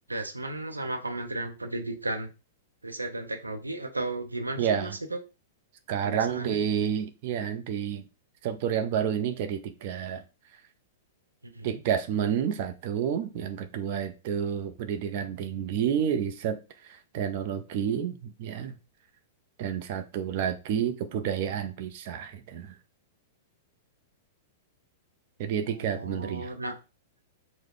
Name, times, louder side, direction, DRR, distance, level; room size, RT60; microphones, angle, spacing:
voice 1, 0.1-2.3 2.8-5.2 6.0-6.6 11.4-11.8 25.7-26.7, right 2 dB, 90° right, 0.7 m, -34 dB
voice 2, 4.6-5.0 5.9-8.0 8.4-10.2 11.6-18.8 19.6-22.8 25.4-26.5, right 8 dB, 50° right, 0.6 m, -30 dB
4.6 x 2.2 x 3.8 m
figure-of-eight pair, 105°, 0 cm